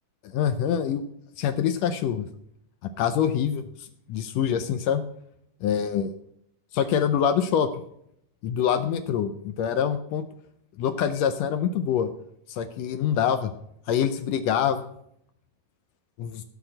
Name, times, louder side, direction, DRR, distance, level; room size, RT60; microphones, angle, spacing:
voice 1, 0.2-1.0 1.4-2.3 3.0-5.0 5.6-6.1 6.7-7.7 8.4-10.2 10.8-12.1 12.5-13.5 13.9-14.9 16.2-16.4, left 8 dB, 85° left, 9 dB, 1.5 m, -25 dB
14.5 x 5.0 x 7.8 m, 0.73 s
omnidirectional pair, 3.8 m